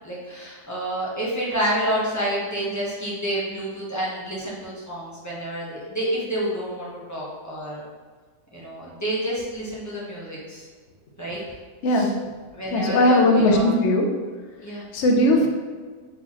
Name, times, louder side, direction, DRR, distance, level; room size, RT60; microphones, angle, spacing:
voice 1, 0.0-7.8 8.5-10.7 11.2-11.4 11.9-12.1 12.5-13.7 14.6-14.8 15.3-15.5, right 1 dB, 15° left, -6 dB, 0.7 m, -29 dB
voice 2, 12.7-14.1 14.9-15.5, left 1 dB, 60° left, 1 dB, 0.8 m, -18 dB
4.0 x 3.9 x 2.9 m, 1.5 s
omnidirectional pair, 1.7 m